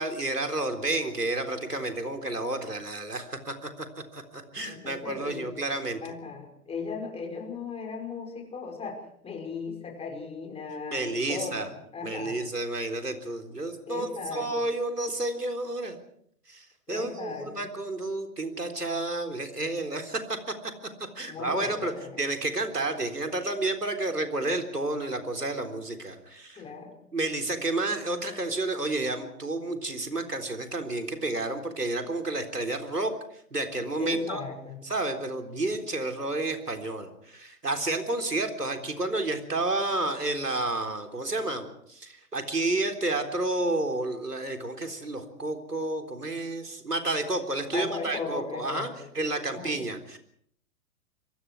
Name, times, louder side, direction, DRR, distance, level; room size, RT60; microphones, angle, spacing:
voice 1, 0.0-3.9 4.1-6.0 10.9-11.7 12.0-16.0 16.5-20.5 21.2-26.6 27.1-33.1 33.5-34.4 34.8-50.2, right 2 dB, 90° right, 5 dB, 3.9 m, -31 dB
voice 2, 4.6-5.5 6.0-12.4 13.9-14.5 16.9-17.7 21.3-22.2 26.6-26.9 34.0-34.8 47.7-49.1 49.5-49.8, left 5 dB, 15° left, 2 dB, 5.6 m, -37 dB
27.0 x 23.0 x 4.8 m, 0.67 s
figure-of-eight pair, 115°, 46 cm